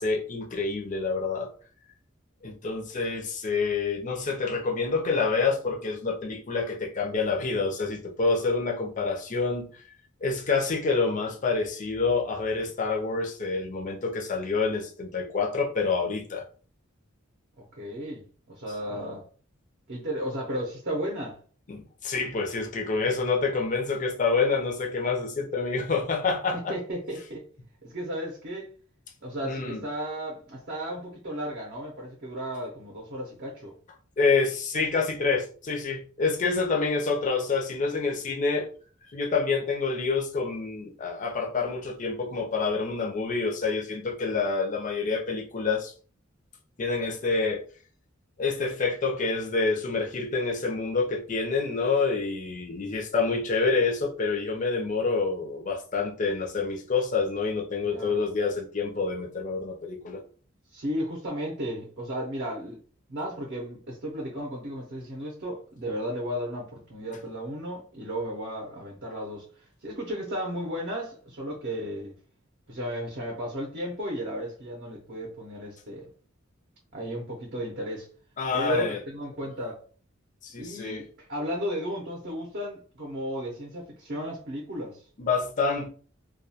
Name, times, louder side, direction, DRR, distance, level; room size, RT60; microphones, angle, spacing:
voice 1, 0.0-1.5 2.4-9.7 10.2-16.5 18.9-19.0 21.7-26.8 29.4-29.8 34.2-38.7 39.1-45.9 46.8-47.6 48.4-60.2 78.4-79.0 80.4-81.0 85.2-85.9, left 4 dB, 40° left, 0.5 m, -27 dB
voice 2, 17.6-19.2 19.9-21.4 26.5-27.4 27.8-28.7 29.2-33.7 57.8-58.3 60.7-62.8 63.1-72.1 72.7-76.1 76.9-78.1 78.5-79.8 80.6-85.0, equal, 55° right, 0.6 m, -34 dB
2.3 x 2.2 x 2.7 m
head